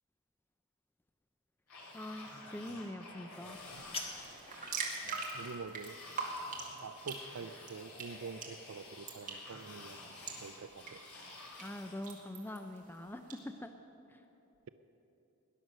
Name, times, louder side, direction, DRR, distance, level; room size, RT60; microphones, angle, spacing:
sound 1, 1.7-12.0, left 2 dB, 80° left, 3.0 m, -51 dB
voice 1, 1.9-3.6 11.6-13.7 14.1-14.2, left 1 dB, 10° left, 7 dB, 0.4 m, -44 dB
voice 2, 3.4-3.8 5.0-6.0 6.8-11.0, right 5 dB, 70° right, 11 dB, 0.5 m, -47 dB
sound 2, 3.5-4.5, left 2 dB, 25° left, 1.6 m, -44 dB
sound 3, 4.2-13.4, right 4 dB, 35° right, 2.1 m, -45 dB
18.5 x 10.5 x 6.4 m, 2.9 s
head